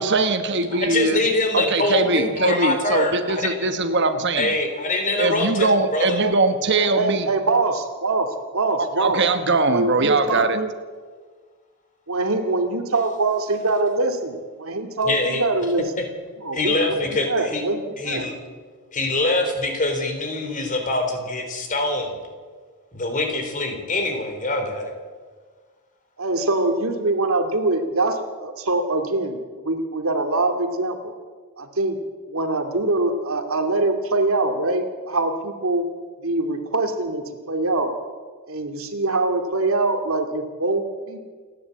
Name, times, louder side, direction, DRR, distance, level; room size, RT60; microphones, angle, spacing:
voice 1, 0.0-1.2 1.5-4.5 5.2-7.3 9.0-10.7, right 3 dB, 55° right, 9 dB, 1.2 m, -21 dB
voice 2, 0.7-3.7 4.4-6.2 15.0-15.4 16.5-17.6 18.0-18.3 18.9-22.2 22.9-24.9, left 2 dB, 35° left, 4 dB, 3.9 m, -24 dB
voice 3, 6.7-9.2 9.7-10.4 12.1-15.9 16.4-18.3 26.2-31.2 31.6-32.0 32.3-35.8 36.2-37.9 38.5-41.2, right 2 dB, 75° right, 5 dB, 2.3 m, -23 dB
28.5 x 11.0 x 8.6 m, 1.5 s
head